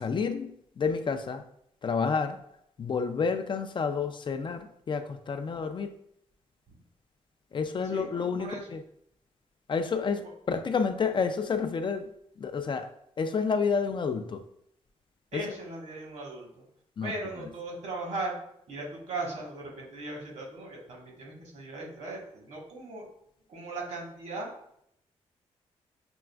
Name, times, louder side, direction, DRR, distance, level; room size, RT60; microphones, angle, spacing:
voice 1, 0.0-1.4 1.8-2.4 2.8-5.9 7.5-8.8 9.7-12.1 12.4-12.9 13.2-14.4 15.3-15.5 17.0-17.1, left 5 dB, 40° left, 8 dB, 0.4 m, -29 dB
voice 2, 7.8-8.7 15.3-16.6 17.0-18.3 18.7-23.1 23.5-24.5, right 2 dB, 70° right, -2 dB, 1.3 m, -38 dB
5.9 x 2.4 x 2.3 m, 0.74 s
cardioid pair, 70°, 12 cm